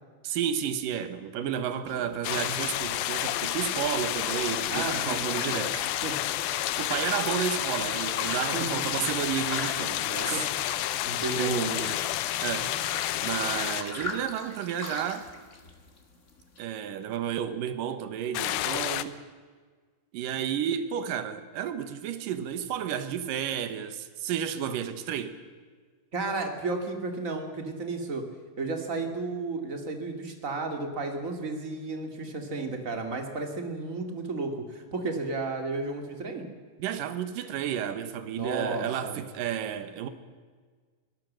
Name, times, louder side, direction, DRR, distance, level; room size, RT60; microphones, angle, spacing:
voice 1, 0.2-5.8 6.8-10.5 11.3-11.8 12.4-12.7 13.2-15.3 16.6-19.2 20.1-25.4 36.8-40.1, right 9 dB, 65° right, 2.5 m, -32 dB
sound 1, 1.9-16.6, left 3 dB, 55° left, 0.8 m, -41 dB
sound 2, 2.2-13.8 18.3-19.0, left 14 dB, 80° left, 2.2 m, -30 dB
voice 2, 4.7-5.2 5.5-5.6 6.0-6.2 8.5-8.9 10.3-10.5 11.0-11.9 26.1-28.2 28.6-36.5 38.3-39.2, right 3 dB, 25° right, 1.9 m, -33 dB
24.0 x 18.5 x 7.6 m
omnidirectional pair, 5.2 m